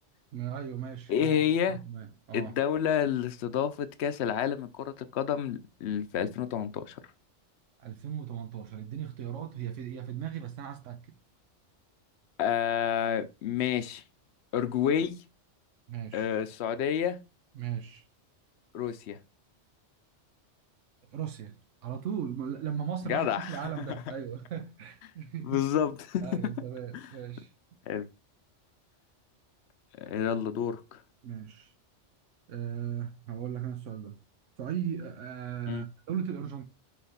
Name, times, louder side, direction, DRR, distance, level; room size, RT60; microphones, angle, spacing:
voice 1, 0.3-1.4 1.7-2.5 7.8-11.0 15.9-16.3 17.5-18.0 21.1-25.6 26.2-27.5 31.2-31.7 32.5-34.2 34.6-36.6, right 9 dB, 90° right, 1.1 m, -37 dB
voice 2, 1.1-1.8 2.3-7.0 12.4-14.0 14.5-15.2 16.1-17.2 18.7-19.2 23.0-23.8 25.4-26.2 26.9-27.0 27.9-28.1 30.0-31.0 35.7-35.9, left 9 dB, 65° left, 0.9 m, -29 dB
5.8 x 3.3 x 5.6 m
omnidirectional pair, 1.2 m